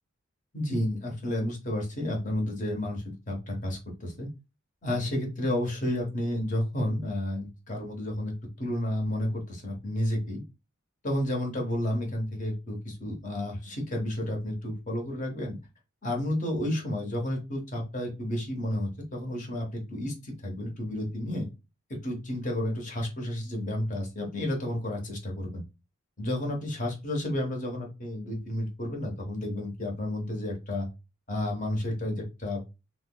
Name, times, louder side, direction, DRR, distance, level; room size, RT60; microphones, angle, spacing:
voice 1, 0.5-4.3 4.8-8.3 8.6-10.4 11.0-15.5 16.0-21.5 22.0-25.6 26.2-30.9 31.3-32.7, left 1 dB, 40° left, 0 dB, 1.0 m, -31 dB
3.3 x 2.0 x 3.7 m, 0.27 s
head